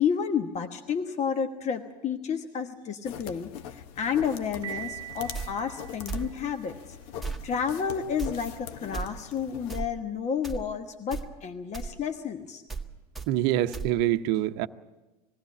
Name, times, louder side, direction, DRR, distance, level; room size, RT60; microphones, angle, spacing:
voice 1, 0.0-6.8 7.4-12.6, left 7 dB, 35° left, 1.3 m, -31 dB
sound 1, 3.0-9.8, left 9 dB, 65° left, 1.0 m, -42 dB
Piano, 4.6-6.6, right 14 dB, 25° right, 1.1 m, -41 dB
sound 2, 5.3-5.5 6.1-6.3 7.2-7.4 8.2-8.3 8.9-9.1 9.7-9.9 10.4-10.6 11.1-11.3 11.7-11.9 12.7-12.9 13.1-13.3 13.7-13.9, right 4 dB, ahead, 1.8 m, -34 dB
voice 2, 13.3-14.7, right 13 dB, 60° right, 0.8 m, -25 dB
20.5 x 16.0 x 8.5 m
hypercardioid pair, 90°, 21 cm